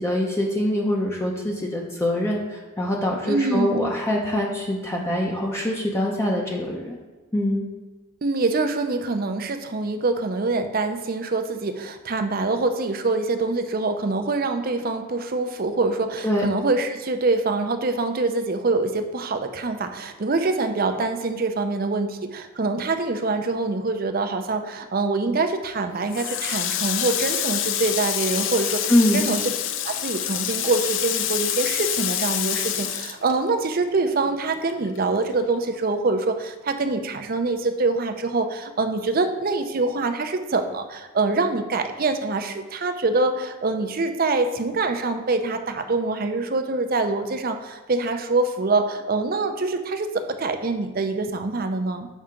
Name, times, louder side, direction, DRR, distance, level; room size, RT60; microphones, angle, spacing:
voice 1, 0.0-7.0 7.3-7.7 16.2-16.5 28.9-29.3, left 1 dB, 15° left, -2 dB, 0.7 m, -24 dB
voice 2, 3.3-3.9 8.2-29.4 29.8-52.1, right 3 dB, 45° right, 7 dB, 0.6 m, -25 dB
Water tap faucet, 26.1-34.0 34.3-35.6, left 10 dB, 65° left, 0.5 m, -27 dB
7.2 x 5.5 x 3.7 m, 1.3 s
head